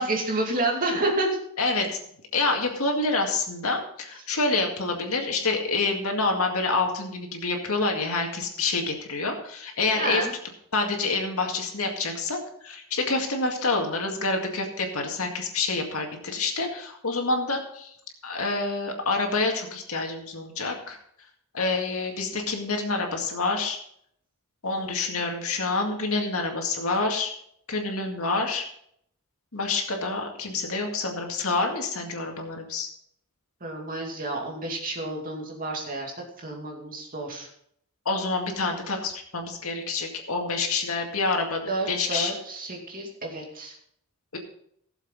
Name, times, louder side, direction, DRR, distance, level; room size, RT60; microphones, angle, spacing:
voice 1, 0.0-1.4 9.9-10.3 33.6-36.1 36.4-37.5 41.7-43.7, right 2 dB, 40° right, 0 dB, 2.5 m, -29 dB
voice 2, 1.6-1.9 2.3-10.3 10.7-17.9 18.2-21.0 21.5-23.8 24.6-27.3 27.7-28.6 29.5-32.9 38.1-42.3 44.3-44.4, left 3 dB, 75° left, 2 dB, 2.1 m, -27 dB
17.0 x 7.3 x 4.1 m, 0.69 s
head